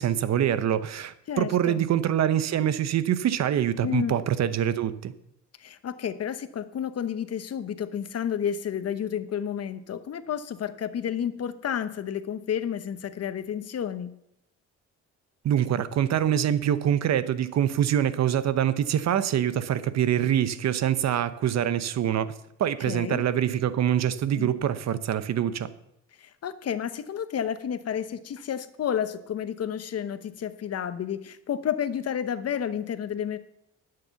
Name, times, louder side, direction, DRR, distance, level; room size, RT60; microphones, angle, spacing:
voice 1, 0.0-5.1 15.4-22.3 22.6-25.7, right 10 dB, 60° right, 14 dB, 0.8 m, -25 dB
voice 2, 1.3-1.8 3.8-4.1 5.6-14.1 22.9-23.2 24.4-24.5 26.2-33.4, left 8 dB, 55° left, 12 dB, 0.9 m, -31 dB
12.0 x 6.8 x 6.9 m, 0.81 s
cardioid pair, 90°, 30 cm